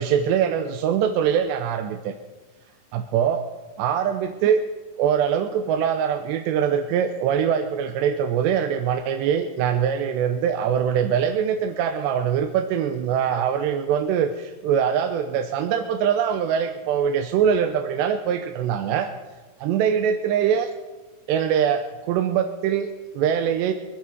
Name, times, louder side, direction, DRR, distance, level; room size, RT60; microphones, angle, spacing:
voice 1, 0.0-2.1 2.9-3.5 3.8-4.6 5.0-19.1 19.6-20.7 21.3-23.7, right 8 dB, 80° right, 7 dB, 2.7 m, -23 dB
24.5 x 8.6 x 4.6 m, 1.3 s
omnidirectional pair, 5.4 m